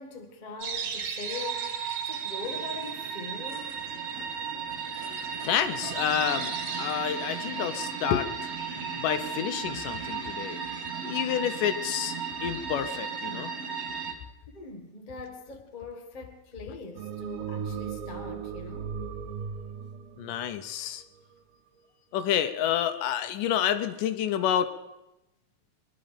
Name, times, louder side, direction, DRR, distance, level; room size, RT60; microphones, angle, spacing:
voice 1, 0.0-3.7 5.2-5.3 14.5-19.0, left 3 dB, 30° left, 0.9 m, -42 dB
sound 1, 0.6-14.1, right 6 dB, 55° right, 2.4 m, -34 dB
voice 2, 5.4-10.6 11.0-12.2 12.4-13.5 20.2-21.0 22.1-24.7, left 10 dB, 80° left, 2.3 m, -29 dB
sound 2, 16.9-21.3, right 7 dB, 80° right, 2.4 m, -37 dB
22.5 x 11.5 x 5.1 m
omnidirectional pair, 3.8 m